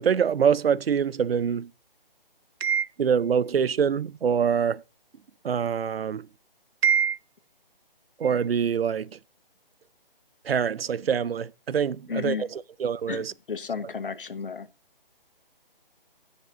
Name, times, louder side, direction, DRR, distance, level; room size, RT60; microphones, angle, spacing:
voice 1, 0.0-1.7 2.6-4.8 5.4-6.2 6.8-7.2 8.2-9.1 10.5-13.3, right 7 dB, 90° right, 0.6 m, -24 dB
voice 2, 12.1-12.5 13.1-14.7, left 5 dB, 65° left, 1.2 m, -33 dB
9.8 x 6.6 x 5.1 m
hypercardioid pair, 175°, 29 cm